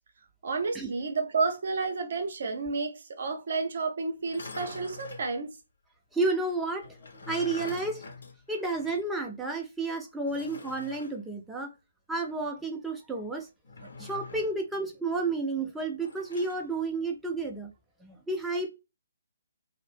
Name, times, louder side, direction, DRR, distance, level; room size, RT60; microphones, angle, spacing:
voice 1, 0.4-5.5, right 4 dB, 55° right, 0.7 m, -31 dB
sound 1, 4.2-5.3 6.8-9.1 9.4-9.5 10.3-11.2 13.6-14.6 16.0-16.6, left 3 dB, 70° left, 0.7 m, -44 dB
voice 2, 6.1-7.0 7.3-8.0 8.5-11.7 12.1-13.5 14.0-17.7 18.0-18.7, right 3 dB, 5° right, 0.6 m, -31 dB
2.6 x 2.0 x 3.1 m
figure-of-eight pair, 140°, 0 cm